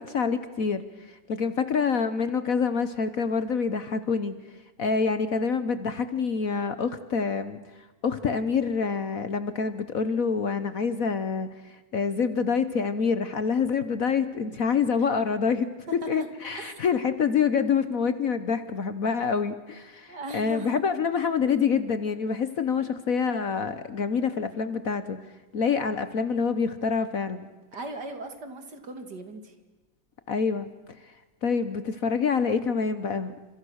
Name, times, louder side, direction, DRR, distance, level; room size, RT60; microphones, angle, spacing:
voice 1, 0.0-4.3 4.8-7.6 8.0-25.2 25.5-27.5 30.3-30.7 31.0-31.1 31.4-33.3, left 5 dB, 50° left, 12 dB, 1.3 m, -26 dB
voice 2, 20.1-20.8 27.7-29.5, right 2 dB, 60° right, 7 dB, 3.0 m, -38 dB
30.0 x 27.0 x 6.5 m, 1.1 s
omnidirectional pair, 2.1 m